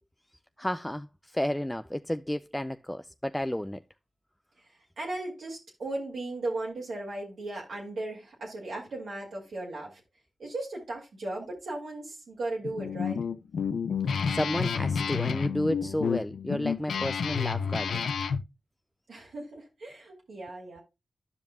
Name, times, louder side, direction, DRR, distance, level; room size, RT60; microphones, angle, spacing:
voice 1, 0.6-1.1 1.3-3.8 14.3-18.1, left 1 dB, 10° left, 0.3 m, -31 dB
voice 2, 5.0-10.0 10.4-13.2 19.1-20.8, right 2 dB, 80° right, 2.1 m, -36 dB
Guitar, 12.6-18.4, left 6 dB, 85° left, 0.5 m, -30 dB
12.5 x 5.2 x 2.2 m
cardioid pair, 50°, 0 cm